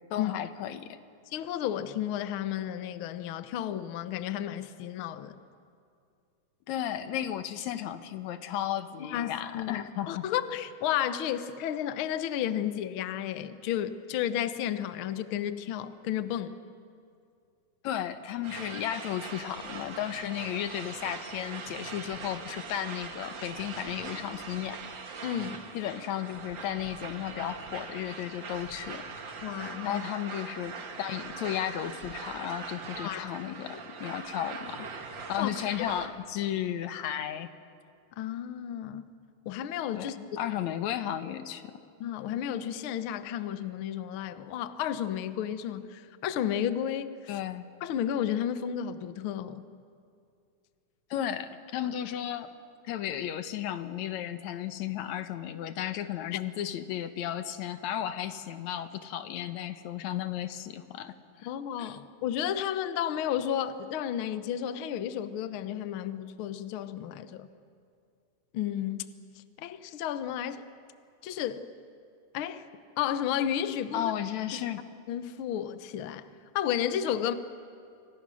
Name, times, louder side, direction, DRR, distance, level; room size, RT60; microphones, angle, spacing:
voice 1, 0.1-1.0 6.7-10.2 17.8-24.8 25.7-29.3 29.8-34.9 35.3-37.5 39.9-41.7 47.3-47.7 51.1-52.5 52.8-61.5 61.8-62.0 73.9-74.8, left 11 dB, 70° left, 10 dB, 2.2 m, -34 dB
voice 2, 1.3-5.4 9.1-16.5 25.2-25.6 29.4-30.0 33.0-33.3 35.4-35.5 38.2-39.1 39.4-40.2 42.0-47.1 47.8-49.7 56.3-56.4 61.5-67.5 68.5-69.1 69.6-70.6 71.2-71.7 72.3-72.7 73.0-74.1 75.1-76.3 76.5-77.3, left 10 dB, 90° left, 11 dB, 1.1 m, -32 dB
sound 1, 18.4-36.1, right 5 dB, 45° right, 1.8 m, -42 dB
27.0 x 26.0 x 6.3 m, 2.4 s
omnidirectional pair, 3.6 m